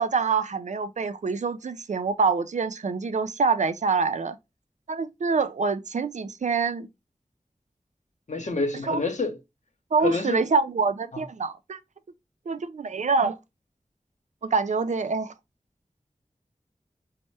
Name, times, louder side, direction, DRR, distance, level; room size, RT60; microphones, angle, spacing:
voice 1, 0.0-4.4 4.9-6.9 8.8-9.0 9.9-11.8 12.5-13.4 14.4-15.3, right 4 dB, 75° right, 0.4 m, -25 dB
voice 2, 8.3-9.3 10.0-10.4, left 3 dB, 70° left, 0.8 m, -28 dB
4.2 x 2.1 x 3.2 m
wide cardioid pair, 45°, 12 cm